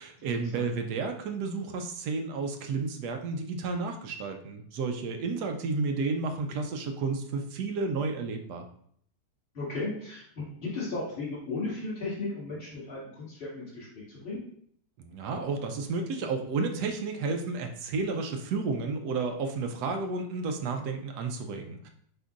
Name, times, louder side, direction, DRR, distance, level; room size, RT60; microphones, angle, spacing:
voice 1, 0.0-8.7 15.0-21.9, right 4 dB, 80° right, 5 dB, 1.2 m, -32 dB
voice 2, 9.5-14.4, left 3 dB, 35° left, -8 dB, 2.0 m, -35 dB
7.8 x 2.6 x 2.5 m, 0.63 s
omnidirectional pair, 1.8 m